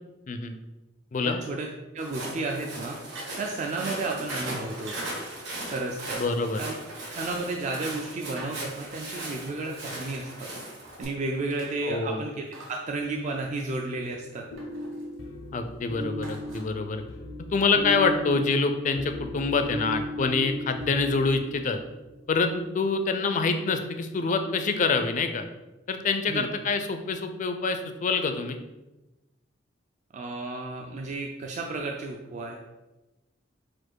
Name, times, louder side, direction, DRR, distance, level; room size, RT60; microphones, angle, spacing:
voice 1, 1.2-1.7 1.9-4.9 5.7-6.2 6.6-6.8 7.1-10.5 11.0-14.5 26.3-26.5 30.1-32.6, right 2 dB, 40° right, 1 dB, 0.4 m, -32 dB
Walk footsteps, 2.0-11.0, right 1 dB, 60° right, 1.5 m, -38 dB
sound 1, 3.1-4.0 4.6-5.3 6.5-9.2 10.7-12.1 12.4-12.9 14.0-15.1 16.2-16.6, right 1 dB, 85° right, 1.0 m, -47 dB
voice 2, 6.2-6.6 11.8-12.2 15.5-17.0 17.5-21.8 22.3-25.4 25.9-28.6, left 4 dB, 40° left, 8 dB, 0.4 m, -26 dB
sound 2, 14.1-22.1, left 1 dB, 85° left, 0.6 m, -36 dB
4.4 x 2.4 x 4.5 m, 1.0 s
head